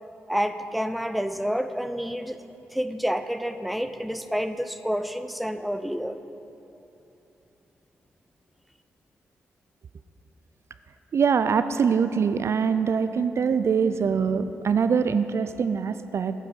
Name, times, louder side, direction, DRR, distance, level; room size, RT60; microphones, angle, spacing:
voice 1, 0.3-2.4 2.7-6.2, equal, ahead, 10 dB, 0.5 m, -29 dB
voice 2, 11.1-16.3, right 6 dB, 55° right, 11 dB, 0.4 m, -23 dB
9.3 x 7.3 x 5.7 m, 2.9 s
hypercardioid pair, 40°, 6 cm